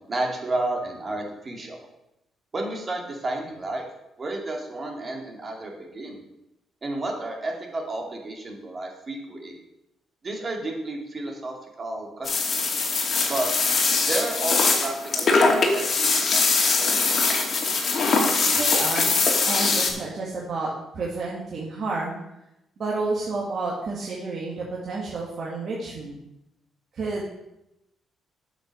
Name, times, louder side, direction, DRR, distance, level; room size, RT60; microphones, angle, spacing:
voice 1, 0.0-1.8 2.5-3.9 4.2-6.2 6.8-9.6 10.2-12.6 13.3-13.5 14.0-16.4 16.8-17.1, right 2 dB, 35° right, 1 dB, 2.5 m, -32 dB
sound 1, 12.2-19.9, left 4 dB, 50° left, 2.3 m, -22 dB
voice 2, 18.5-19.1 19.5-22.2 22.8-26.2 26.9-27.3, right 3 dB, 55° right, -4 dB, 2.1 m, -30 dB
8.4 x 6.1 x 6.6 m, 0.88 s
cardioid pair, 90°, 0 cm